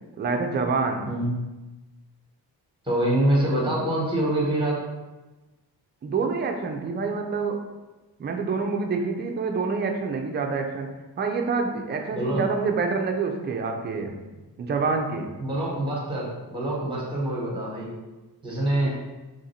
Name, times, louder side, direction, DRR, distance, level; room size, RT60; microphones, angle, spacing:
voice 1, 0.2-1.1 6.0-7.6 8.2-10.9 11.2-14.2 14.6-15.3 18.8-18.9, right 4 dB, 30° right, 3 dB, 0.4 m, -27 dB
voice 2, 2.8-4.8 12.1-12.4 15.4-17.9 18.4-19.0, right 1 dB, 15° right, -4 dB, 1.1 m, -25 dB
3.0 x 2.5 x 4.2 m, 1.1 s
cardioid pair, 120°, 39 cm